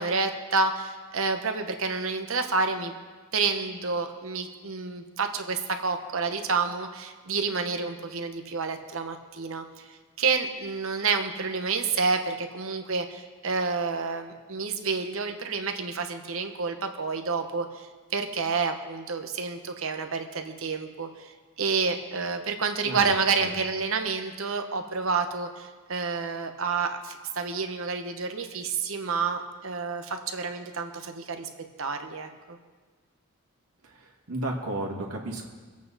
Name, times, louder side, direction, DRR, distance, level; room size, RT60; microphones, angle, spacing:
voice 1, 0.0-2.9 3.3-21.3 21.6-31.5 31.8-32.6, right 4 dB, 65° right, 6 dB, 1.0 m, -29 dB
voice 2, 33.8-35.4, right 1 dB, 85° right, 0 dB, 2.0 m, -33 dB
23.0 x 8.4 x 4.1 m, 1.4 s
head